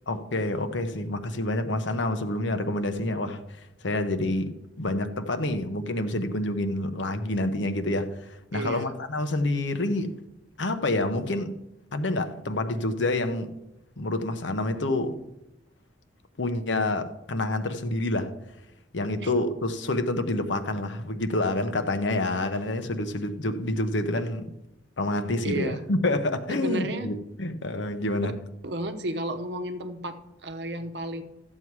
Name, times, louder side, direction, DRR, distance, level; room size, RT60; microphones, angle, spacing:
voice 1, 0.1-4.5 4.8-10.1 10.6-11.5 11.9-13.5 14.0-15.2 16.4-18.3 18.9-24.5 25.0-28.3, left 2 dB, 80° left, 0.9 m, -28 dB
voice 2, 8.5-8.9 19.2-19.3 25.4-25.8 26.5-27.1 28.6-31.2, right 1 dB, 65° right, 0.9 m, -32 dB
12.5 x 7.7 x 4.7 m
head